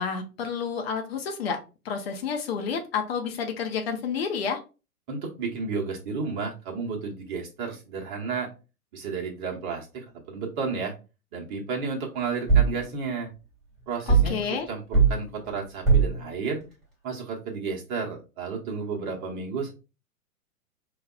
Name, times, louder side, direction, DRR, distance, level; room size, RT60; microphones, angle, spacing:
voice 1, 0.0-1.6 1.8-4.6 14.2-14.7, left 6 dB, 40° left, 4 dB, 0.7 m, -30 dB
voice 2, 5.1-8.5 8.9-10.9 11.3-13.3 13.9-16.6 17.0-19.7, right 5 dB, 35° right, 0 dB, 1.0 m, -32 dB
sound 1, 12.5-12.8 14.1-14.4 14.9-15.2 15.8-16.2, right 5 dB, ahead, 1.5 m, -19 dB
4.9 x 2.3 x 2.3 m, 0.31 s
figure-of-eight pair, 115°, 45 cm